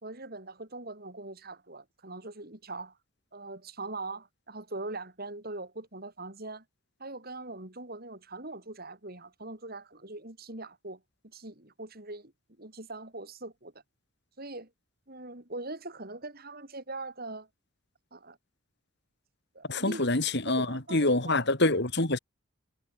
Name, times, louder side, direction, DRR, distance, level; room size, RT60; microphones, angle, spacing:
voice 1, 0.0-2.9 3.3-6.6 7.0-12.3 12.6-13.7 14.4-14.7 15.1-17.5 18.1-18.4 19.5-20.0 20.5-21.4, right 2 dB, 45° right, 4.1 m, -41 dB
voice 2, 19.7-22.2, left 2 dB, 55° left, 3.1 m, -26 dB
head